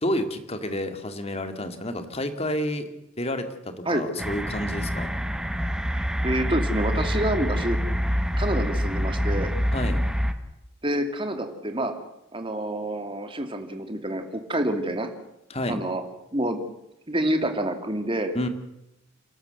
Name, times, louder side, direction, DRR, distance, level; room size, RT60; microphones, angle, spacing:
voice 1, 0.0-2.9 3.2-5.1 9.7-10.0 15.5-15.8 18.3-18.5, left 1 dB, 30° left, 8 dB, 2.3 m, -29 dB
sound 1, 4.2-10.3, equal, 5° right, 1.4 m, -26 dB
voice 2, 6.2-7.8 8.4-9.5 10.8-11.9 12.3-15.1 15.7-16.0 16.3-16.6 17.1-18.3, right 1 dB, 25° right, 6 dB, 2.5 m, -27 dB
29.5 x 12.5 x 7.9 m, 0.87 s
head